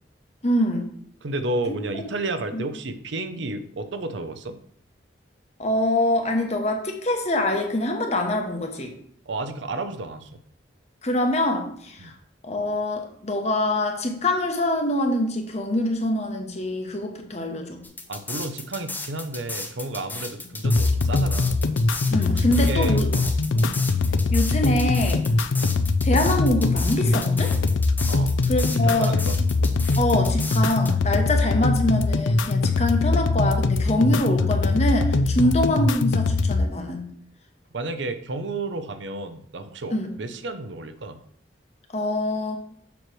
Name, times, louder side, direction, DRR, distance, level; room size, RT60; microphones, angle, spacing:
voice 1, 0.4-0.8 1.7-1.8 2.5-2.6 5.6-8.9 11.0-12.1 12.4-17.8 22.1-23.1 23.5-23.7 24.3-25.2 26.0-27.5 28.5-29.1 30.0-37.1 39.9-40.1 41.9-42.6, left 1 dB, 35° left, 3 dB, 1.0 m, -24 dB
voice 2, 1.2-4.6 9.3-10.4 12.0-12.1 18.1-21.6 22.3-23.3 25.3-25.4 28.1-28.4 28.7-29.4 35.4-35.5 37.7-41.2, right 2 dB, 75° right, 9 dB, 0.7 m, -32 dB
sound 1, 17.8-30.9, left 3 dB, 10° left, 0.7 m, -34 dB
sound 2, 20.6-36.6, left 3 dB, 85° left, 0.5 m, -22 dB
7.1 x 3.2 x 6.0 m, 0.63 s
head